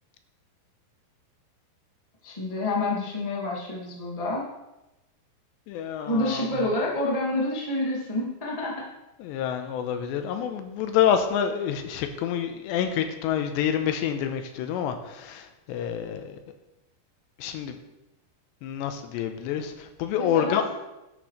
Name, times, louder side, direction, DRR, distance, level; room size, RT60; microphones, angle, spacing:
voice 1, 2.2-4.5 6.0-8.9 20.2-20.7, left 2 dB, 15° left, -4 dB, 1.1 m, -28 dB
voice 2, 5.7-6.5 9.2-16.4 17.4-17.8 18.6-20.6, left 9 dB, 90° left, 7 dB, 3.0 m, -27 dB
11.5 x 11.0 x 3.3 m, 0.96 s
omnidirectional pair, 5.0 m